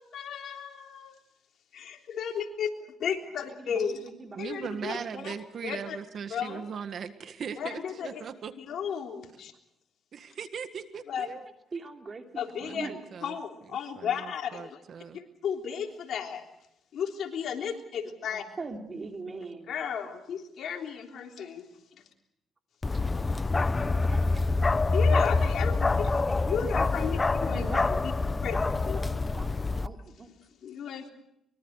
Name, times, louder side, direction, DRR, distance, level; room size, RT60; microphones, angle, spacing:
voice 1, 0.1-1.1 1.7-2.7 3.0-4.0 4.4-5.0 5.2-5.3 5.6-6.0 6.3-6.6 7.6-8.2 8.6-9.5 11.1-11.3 12.4-12.9 13.2-14.8 15.1-16.4 16.9-18.5 19.7-21.6 24.9-26.1 26.5-27.6 28.4-28.6 28.9-29.0 30.6-31.1, left 7 dB, 65° left, 3 dB, 3.6 m, -34 dB
voice 2, 3.5-5.3 11.7-13.0 18.6-19.7 23.8-25.2 27.1-28.2 28.5-30.3, right 3 dB, 35° right, 4 dB, 3.2 m, -42 dB
voice 3, 4.4-8.5 10.1-11.5 12.6-15.2, right 7 dB, 55° right, 10 dB, 1.7 m, -39 dB
Bark, 22.8-29.9, left 3 dB, 25° left, 0.9 m, -26 dB
24.0 x 23.0 x 6.6 m, 0.79 s
cardioid pair, 90°, 0 cm